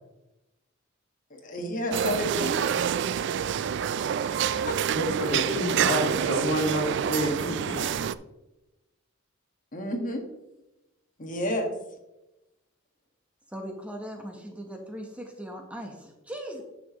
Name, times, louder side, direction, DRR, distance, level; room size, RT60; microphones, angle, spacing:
voice 1, 1.3-2.7 2.9-3.3 4.2-4.4 4.7-4.8 5.9-6.1 9.7-10.2 11.2-11.7, left 1 dB, 40° left, 2 dB, 1.6 m, -31 dB
sound 1, 1.9-8.1, right 8 dB, 60° right, 0.3 m, -27 dB
voice 2, 4.9-7.9, equal, 65° left, 0 dB, 2.1 m, -28 dB
voice 3, 13.5-16.6, equal, 5° right, 2 dB, 1.1 m, -39 dB
10.0 x 6.9 x 3.1 m, 0.95 s
head